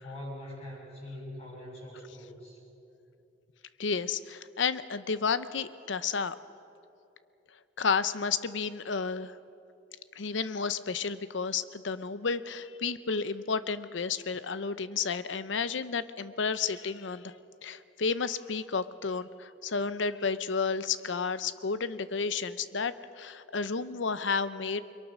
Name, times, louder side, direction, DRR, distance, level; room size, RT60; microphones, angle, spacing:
voice 1, 0.0-2.6, left 1 dB, 35° left, -3 dB, 7.2 m, -43 dB
voice 2, 3.8-6.4 7.8-9.4 10.2-17.3 17.6-24.8, left 5 dB, 85° left, 14 dB, 0.7 m, -31 dB
29.0 x 23.0 x 6.2 m, 2.9 s
head